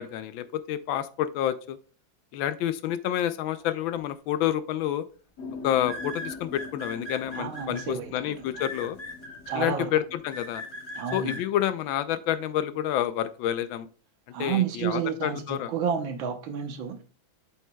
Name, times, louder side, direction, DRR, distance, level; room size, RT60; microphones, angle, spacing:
voice 1, 0.0-1.8 2.3-5.0 5.6-9.0 9.6-10.6 11.1-13.9 14.4-15.7, left 11 dB, 80° left, 1.3 m, -29 dB
sound 1, 4.3-4.6 5.8-7.8 8.5-9.6 10.3-11.4, equal, 30° left, 1.2 m, -38 dB
sound 2, 5.4-12.9, left 4 dB, 60° left, 1.5 m, -44 dB
voice 2, 7.3-8.5 9.5-9.9 11.0-11.4 14.3-17.0, right 7 dB, 80° right, 1.7 m, -30 dB
7.9 x 7.3 x 2.2 m
omnidirectional pair, 2.2 m